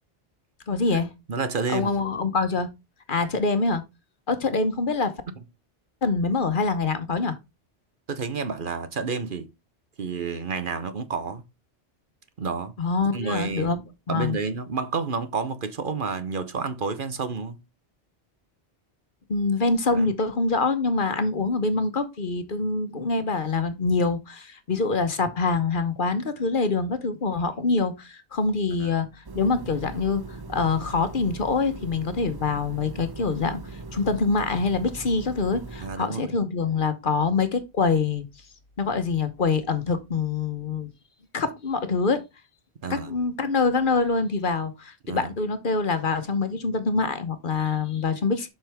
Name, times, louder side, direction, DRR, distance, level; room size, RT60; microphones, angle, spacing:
voice 1, 0.7-1.1 1.7-2.7 3.1-3.8 4.3-5.1 6.0-7.4 12.8-13.8 14.1-14.4 19.3-33.6 33.9-38.2 38.8-40.9 41.3-42.2 42.9-48.5, left 4 dB, 55° left, 1.1 m, -25 dB
voice 2, 1.3-1.9 8.1-9.5 10.0-11.4 12.4-12.7 13.1-13.7 14.1-17.6 19.9-20.1 28.8-28.9 35.8-36.3 42.8-43.1 45.1-45.3, right 5 dB, 55° right, 1.0 m, -30 dB
sound 1, 29.2-36.0, right 3 dB, 25° right, 0.6 m, -40 dB
7.4 x 5.8 x 3.5 m
omnidirectional pair, 1.1 m